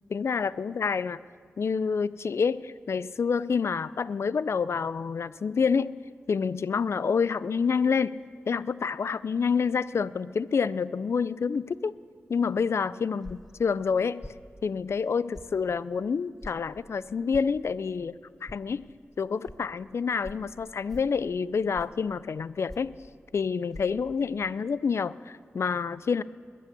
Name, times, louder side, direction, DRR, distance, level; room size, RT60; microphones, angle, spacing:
voice 1, 0.1-1.2 1.6-6.0 6.3-8.2 8.5-11.9 12.3-14.2 14.6-18.1 18.4-18.8 19.2-22.9 23.3-26.2, left 5 dB, 70° left, 18 dB, 0.4 m, -28 dB
sound 1, 13.2-13.5 14.2-14.4 15.3-15.5 16.4-16.6 17.3-17.5 18.5-18.6 19.4-19.6 20.2-20.4 20.9-21.2 21.7-22.0 22.7-23.0 23.7-23.8, left 1 dB, 5° left, 0.7 m, -43 dB
21.0 x 8.5 x 6.8 m, 2.1 s
wide cardioid pair, 95°, 5 cm